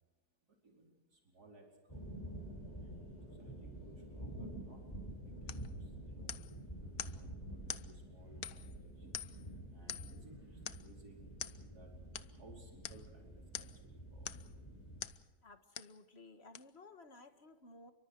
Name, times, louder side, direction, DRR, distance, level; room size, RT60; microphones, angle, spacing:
voice 1, 0.6-2.1 2.8-3.0 3.4-6.4 7.0-9.1 9.7-11.3 11.7-11.9 12.3-14.3, right 2 dB, 80° right, 0 dB, 5.1 m, -62 dB
sound 1, 1.9-15.0, right 1 dB, 15° left, 6.4 m, -49 dB
sound 2, 5.5-5.7 6.3-6.6 7.0-7.2 7.7-7.9 8.4-8.8 9.1-9.5 9.9-10.2 10.7-10.9 11.4-11.6 12.1-12.3 12.8-13.0 13.5-13.8 14.2-14.5 15.0-15.2 15.7-16.0 16.5-16.6, left 10 dB, 70° left, 1.3 m, -45 dB
voice 2, 15.4-17.9, left 2 dB, 40° left, 8 dB, 2.0 m, -57 dB
29.5 x 24.0 x 4.8 m, 1.2 s
omnidirectional pair, 1.6 m